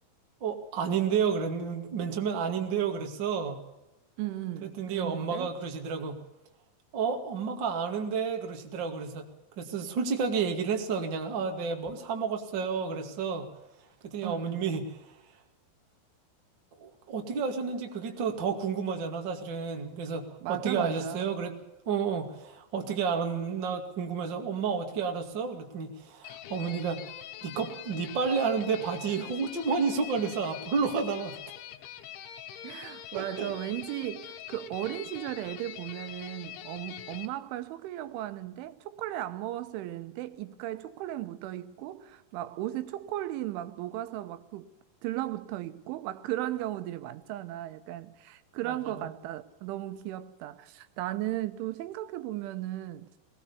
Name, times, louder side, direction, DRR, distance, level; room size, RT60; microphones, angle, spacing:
voice 1, 0.4-3.6 4.6-6.2 6.9-9.2 9.6-13.4 14.0-14.8 16.8-21.5 21.9-27.0 27.4-31.4 33.1-33.5 48.6-49.1, right 6 dB, 40° right, 1.8 m, -31 dB
voice 2, 4.2-5.5 14.2-14.7 20.4-21.3 32.6-44.7 45.0-53.1, right 14 dB, 85° right, 3.4 m, -36 dB
sound 1, 26.2-37.3, left 12 dB, 80° left, 3.5 m, -44 dB
21.0 x 18.5 x 7.0 m
omnidirectional pair, 5.4 m